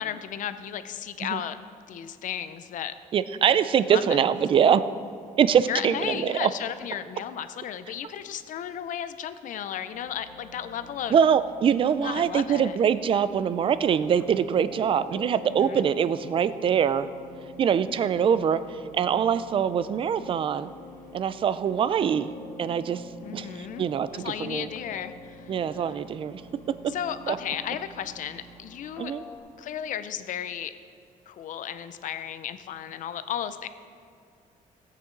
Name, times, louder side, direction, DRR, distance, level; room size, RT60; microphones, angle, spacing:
voice 1, 0.0-1.6 1.9-2.9 3.9-4.2 5.7-11.2 12.0-12.8 15.5-15.8 23.2-23.9 24.1-25.5 26.9-29.1 29.6-30.7 31.3-33.7, left 9 dB, 65° left, 11 dB, 0.6 m, -34 dB
voice 2, 3.1-4.8 5.4-6.5 11.1-17.1 17.6-20.7 21.1-22.3 22.6-24.7 25.5-26.4 26.7-26.9 27.3-27.4 29.0-29.2, right 8 dB, 40° right, 14 dB, 0.4 m, -24 dB
sound 1, 9.9-29.4, left 2 dB, 15° left, 1.7 m, -46 dB
17.5 x 8.6 x 3.9 m, 2.2 s
cardioid pair, 165°, 14 cm